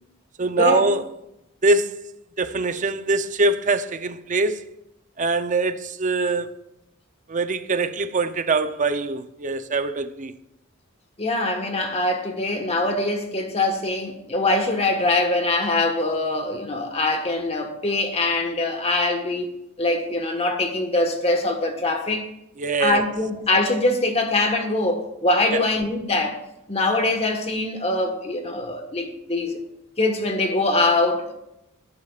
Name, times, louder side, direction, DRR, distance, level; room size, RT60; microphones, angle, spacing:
voice 1, 0.4-1.1 1.6-2.0 2.4-4.6 5.2-6.5 7.3-10.3 22.6-23.0 25.5-25.7, right 3 dB, 35° right, 0.6 m, -23 dB
voice 2, 11.2-19.5 19.8-22.3 22.8-26.4 26.7-29.6 30.0-31.3, left 2 dB, 30° left, 1.3 m, -23 dB
17.5 x 9.6 x 2.4 m
head